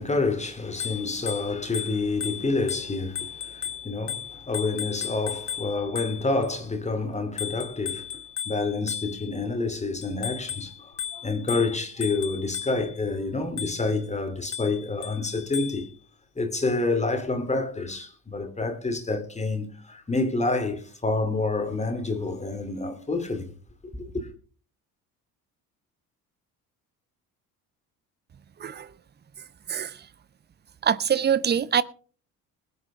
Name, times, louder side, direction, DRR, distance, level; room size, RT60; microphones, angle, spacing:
voice 1, 0.0-8.2 8.5-15.9 16.4-23.5 23.9-24.3, left 3 dB, 15° left, 2.5 m, -28 dB
Bicycle bell, 0.8-6.5 7.4-9.5 10.0-13.0 13.6-14.0 14.5-15.9, left 9 dB, 85° left, 0.6 m, -36 dB
voice 2, 29.7-30.1 30.8-31.8, right 8 dB, 20° right, 0.7 m, -24 dB
21.0 x 8.3 x 3.6 m
figure-of-eight pair, 55°, 45 cm